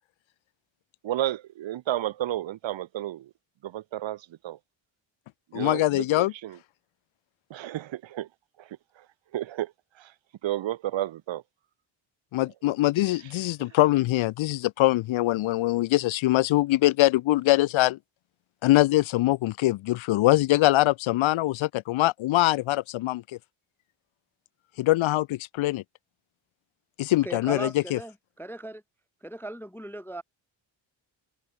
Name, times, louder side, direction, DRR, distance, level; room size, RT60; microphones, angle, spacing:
voice 1, 1.0-3.3 3.6-4.6 5.5-6.6 7.5-8.3 8.6-8.7 9.3-9.7 10.0-10.1 10.4-11.4, right 13 dB, 75° right, 1.5 m, -32 dB
voice 2, 5.5-6.3 12.3-18.0 18.6-23.2 24.8-25.8 27.0-28.0, left 17 dB, 80° left, 0.7 m, -23 dB
voice 3, 27.2-28.8 29.2-30.2, right 2 dB, 5° left, 0.3 m, -38 dB
open air
wide cardioid pair, 175°, 46 cm